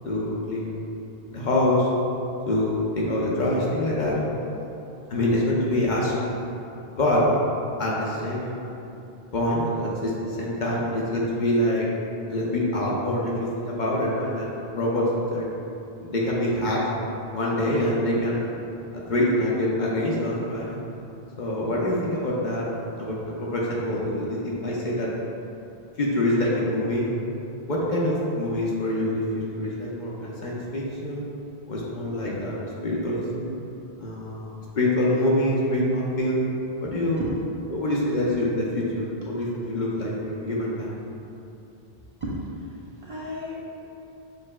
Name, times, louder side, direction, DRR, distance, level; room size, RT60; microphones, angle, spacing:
voice 1, 0.0-0.8 1.3-1.9 2.5-4.1 5.1-6.4 7.0-7.2 7.8-8.6 9.3-11.9 12.3-15.5 16.0-16.8 17.3-18.5 18.9-20.8 21.4-22.7 23.0-25.1 26.0-27.1 27.7-31.3 31.7-33.6 34.0-36.5 36.8-37.3 37.7-41.0, left 1 dB, 55° left, -5 dB, 0.7 m, -25 dB
voice 2, 3.6-4.7 5.7-5.9 37.2-37.3 42.2-42.4 43.0-43.6, equal, 40° right, -8 dB, 0.6 m, -34 dB
6.6 x 3.2 x 2.2 m, 2.8 s
omnidirectional pair, 1.0 m